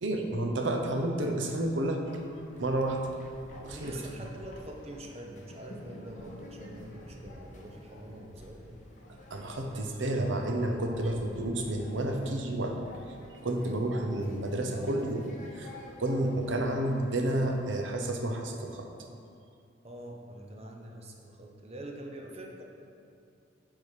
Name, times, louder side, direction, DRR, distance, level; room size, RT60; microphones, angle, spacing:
voice 1, 0.0-2.0 2.6-3.0 3.6-4.0 9.3-12.8 13.3-15.3 15.5-18.9, right 1 dB, 80° right, 3 dB, 0.8 m, -30 dB
sound 1, 2.1-17.8, left 1 dB, 40° left, 0.9 m, -50 dB
voice 2, 3.6-8.7 19.8-22.6, right 1 dB, 35° right, 1 dB, 0.7 m, -45 dB
9.4 x 3.8 x 4.9 m, 2.5 s
head